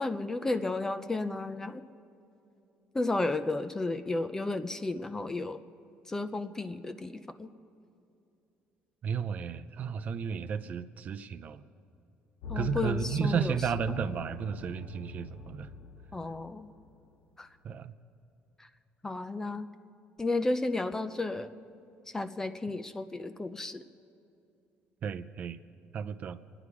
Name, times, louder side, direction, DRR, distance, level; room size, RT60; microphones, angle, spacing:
voice 1, 0.0-1.8 2.9-5.6 6.1-7.5 12.5-13.7 16.1-16.7 17.4-17.5 18.6-18.7 19.0-19.7 20.2-21.5 22.1-23.8, left 2 dB, 15° left, 10 dB, 0.5 m, -33 dB
voice 2, 9.0-11.6 12.5-15.7 17.6-17.9 25.0-25.6 25.9-26.4, right 7 dB, 40° right, 10 dB, 0.6 m, -33 dB
sound 1, 12.4-16.6 16.9-17.0, left 4 dB, 90° left, 0.8 m, -41 dB
27.0 x 10.0 x 4.8 m, 2.7 s
cardioid pair, 150°, 4 cm